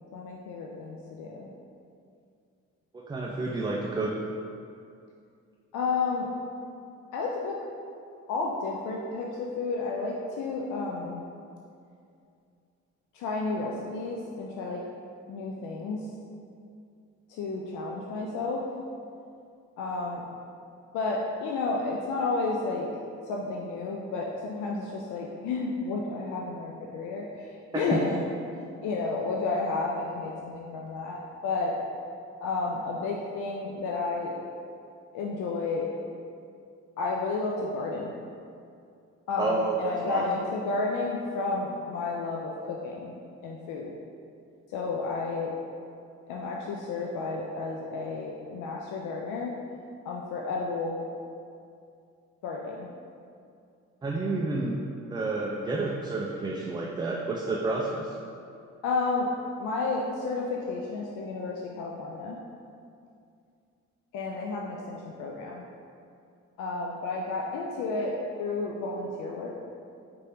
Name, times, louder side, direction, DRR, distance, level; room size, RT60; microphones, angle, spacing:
voice 1, 0.1-1.5 5.7-6.3 7.1-7.6 8.3-11.2 13.1-14.8 15.3-16.1 17.3-18.6 19.8-20.2 20.9-22.9 23.3-28.3 28.6-31.7 32.4-34.4 35.1-35.9 37.0-38.2 39.3-43.2 43.4-43.9 44.7-45.6 46.3-49.5 50.0-51.0 52.4-52.9 58.8-59.3 59.6-62.4 64.1-65.7 66.6-69.5, left 3 dB, 80° left, -2 dB, 0.5 m, -31 dB
voice 2, 2.9-4.2 27.7-28.0 39.4-40.2 54.0-54.8 55.1-58.1, right 3 dB, 15° right, -2 dB, 0.3 m, -30 dB
5.1 x 2.8 x 3.4 m, 2.4 s
cardioid pair, 90°, 30 cm